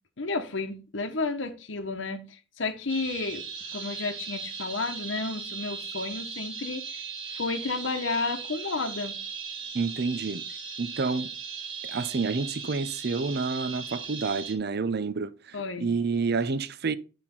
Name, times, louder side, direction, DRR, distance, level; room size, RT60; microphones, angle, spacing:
voice 1, 0.2-3.4 3.7-7.0 7.3-9.2 15.5-15.9, left 3 dB, 65° left, 1.0 m, -32 dB
sound 1, 2.9-14.5, right 5 dB, 75° right, 1.8 m, -38 dB
voice 2, 9.7-10.5 10.8-11.3 11.8-17.0, right 4 dB, 50° right, 0.6 m, -29 dB
10.5 x 4.4 x 4.4 m
head